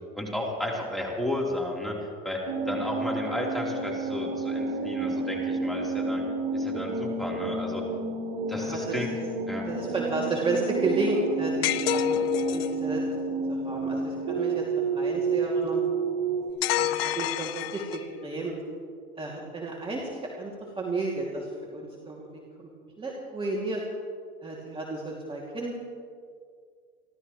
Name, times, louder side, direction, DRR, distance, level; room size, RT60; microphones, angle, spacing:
voice 1, 0.2-1.9 2.2-6.2 6.5-7.8 8.5-9.1 9.5-9.7, left 1 dB, ahead, -3 dB, 3.7 m, -32 dB
sound 1, 2.5-16.5, right 3 dB, 55° right, 3.8 m, -30 dB
voice 2, 8.5-9.0 9.6-12.2 12.5-13.0 13.5-14.6 14.9-15.8 16.7-18.5 19.2-22.2 22.6-22.7 23.0-23.8 24.4-25.8, right 2 dB, 20° right, -3 dB, 2.6 m, -32 dB
sound 2, 11.6-12.8 16.6-18.2, left 12 dB, 85° left, 0.6 m, -28 dB
29.5 x 13.0 x 3.2 m, 2.1 s
hypercardioid pair, 100°, 29 cm